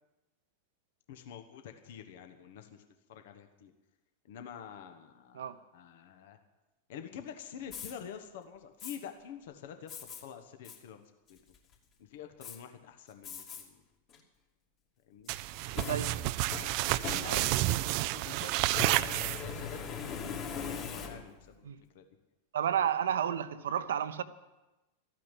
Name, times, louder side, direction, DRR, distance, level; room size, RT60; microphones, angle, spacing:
voice 1, 1.1-2.8 3.1-3.7 4.2-6.4 6.9-11.0 11.3-11.4 12.0-13.8 15.1-15.3 16.7-20.5 20.7-21.7 21.9-22.0, left 8 dB, 55° left, 1.3 m, -47 dB
Fire, 7.6-7.9 8.8-9.0 9.9-10.2 10.6-10.8 11.3-11.7 12.4-12.6 13.2-13.6 14.1-14.2 15.3-17.7 18.6-21.5, left 6 dB, 35° left, 2.8 m, -41 dB
sound 1, 15.3-19.8, right 17 dB, 45° right, 0.4 m, -30 dB
voice 2, 15.7-16.2 21.7-21.8 22.5-24.2, right 9 dB, 60° right, 0.8 m, -31 dB
13.5 x 9.3 x 9.9 m
figure-of-eight pair, 90°, 0 cm